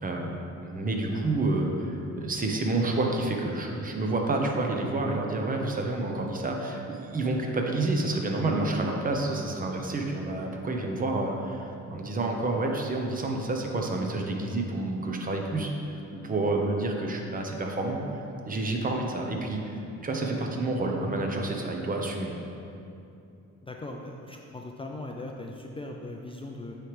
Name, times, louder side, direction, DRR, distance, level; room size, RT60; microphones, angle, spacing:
voice 1, 0.0-18.0 18.4-22.4, right 2 dB, 30° right, 1 dB, 0.8 m, -29 dB
voice 2, 23.6-26.8, left 2 dB, 20° left, 1 dB, 0.4 m, -39 dB
9.0 x 3.3 x 3.2 m, 2.7 s
cardioid pair, 90°, 30 cm